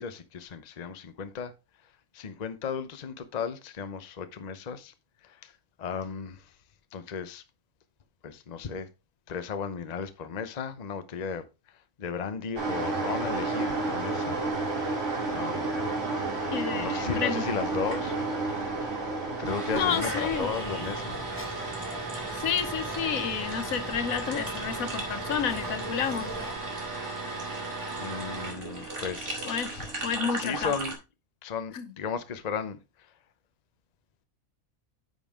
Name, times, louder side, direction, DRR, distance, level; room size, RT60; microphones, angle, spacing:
voice 1, 0.0-1.5 2.1-4.9 5.2-5.5 5.8-6.4 6.9-7.4 8.2-8.9 9.3-11.4 12.0-14.4 15.3-15.8 16.7-18.1 19.4-21.2 28.0-29.9 30.3-30.9 31.4-32.8, left 6 dB, 35° left, 0.7 m, -35 dB
sound 1, 12.6-30.9, right 3 dB, 60° right, 2.5 m, -33 dB
voice 2, 16.5-17.5 19.7-20.5 22.3-26.3 29.4-29.7 30.0-30.7 31.7-31.9, left 7 dB, 75° left, 1.3 m, -30 dB
sound 2, 19.7-26.5, equal, 10° left, 1.0 m, -40 dB
9.4 x 5.5 x 3.6 m
omnidirectional pair, 1.5 m